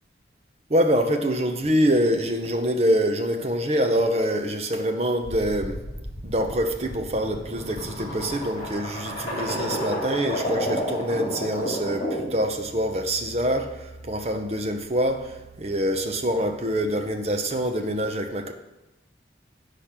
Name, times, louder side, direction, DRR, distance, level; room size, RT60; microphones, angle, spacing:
voice 1, 0.7-5.8 6.2-18.5, equal, 35° right, 0.8 m, -25 dB
sound 1, 5.2-12.4, equal, 40° left, 2.4 m, -31 dB
10.5 x 5.0 x 5.9 m
head